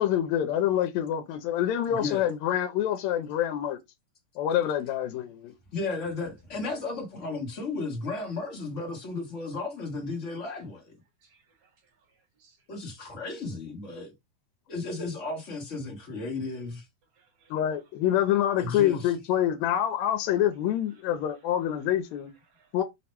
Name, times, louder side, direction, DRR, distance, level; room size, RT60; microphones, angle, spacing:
voice 1, 0.0-3.8 4.4-5.5 17.5-22.3 22.7-22.8, left 11 dB, 80° left, 1.8 m, -26 dB
voice 2, 1.9-2.3 5.7-10.9 12.7-14.1 14.7-16.8 18.6-19.1, left 3 dB, 65° left, 0.7 m, -34 dB
voice 3, 11.2-12.6 17.1-17.5 22.5-22.8, right 5 dB, 70° right, 2.8 m, -66 dB
5.7 x 2.1 x 4.4 m
omnidirectional pair, 3.4 m